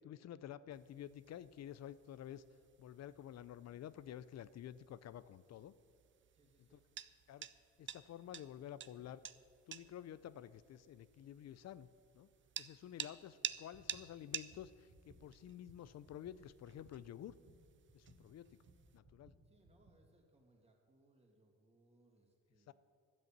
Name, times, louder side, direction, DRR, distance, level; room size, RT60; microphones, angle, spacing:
voice 1, 0.0-2.4 2.8-5.7 6.7-6.8 7.3-7.5 7.8-9.2 9.7-11.9 12.1-12.3 12.6-17.3 17.9-18.5 18.9-19.3 22.7-22.8, left 11 dB, 60° left, 17 dB, 0.6 m, -51 dB
sound 1, 0.7-19.0, right 9 dB, 40° right, 0.5 m, -52 dB
voice 2, 6.3-6.9 13.1-13.5 19.4-22.7, right 1 dB, 20° right, 0 dB, 2.6 m, -71 dB
sound 2, 13.7-20.0, right 2 dB, 85° right, 2.2 m, -65 dB
12.5 x 8.2 x 7.4 m, 2.2 s
cardioid pair, 90°, 30 cm